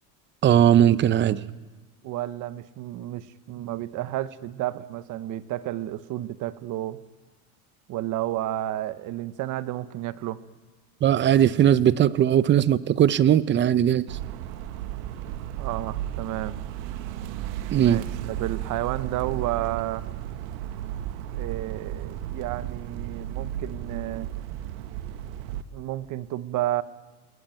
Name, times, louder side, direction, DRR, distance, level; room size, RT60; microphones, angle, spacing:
voice 1, 0.4-1.4 11.0-14.0 17.7-18.0, right 10 dB, 25° right, 17 dB, 0.8 m, -19 dB
voice 2, 2.0-7.0 7.9-10.4 15.6-16.6 17.8-20.0 21.3-24.3 25.7-26.8, right 14 dB, 45° right, 15 dB, 1.1 m, -31 dB
sound 1, 14.1-25.6, right 11 dB, 70° right, 1.7 m, -34 dB
28.0 x 20.5 x 9.2 m, 1.3 s
supercardioid pair, 120°, 43 cm